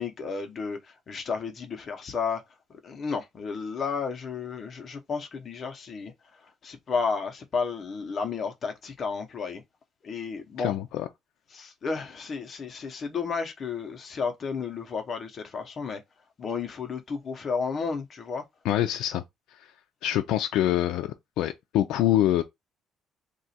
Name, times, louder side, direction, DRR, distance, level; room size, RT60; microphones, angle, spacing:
voice 1, 0.0-2.4 2.7-6.1 6.4-9.6 10.0-10.8 11.5-16.0 16.4-18.4, left 5 dB, 30° left, 0.7 m, -32 dB
voice 2, 10.6-11.1 18.6-19.2 19.6-19.7 20.0-22.4, left 13 dB, 80° left, 0.4 m, -25 dB
2.9 x 2.4 x 4.1 m
cardioid pair, 165°, 0 cm